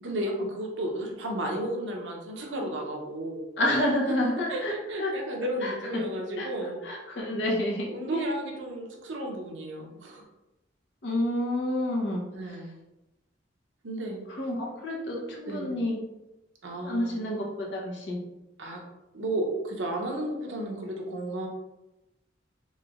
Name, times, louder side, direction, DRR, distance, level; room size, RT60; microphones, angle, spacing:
voice 1, 0.0-3.4 4.5-6.8 7.9-10.2 12.3-12.7 13.8-14.2 15.5-15.8 16.6-17.1 18.6-18.8 19.1-21.5, right 1 dB, 85° right, 1 dB, 0.7 m, -33 dB
voice 2, 3.6-5.1 5.6-6.0 6.4-6.5 6.8-8.2 11.0-12.6 14.3-16.0 16.8-18.2, left 1 dB, 65° left, -1 dB, 0.7 m, -29 dB
3.1 x 3.0 x 2.4 m, 0.97 s
head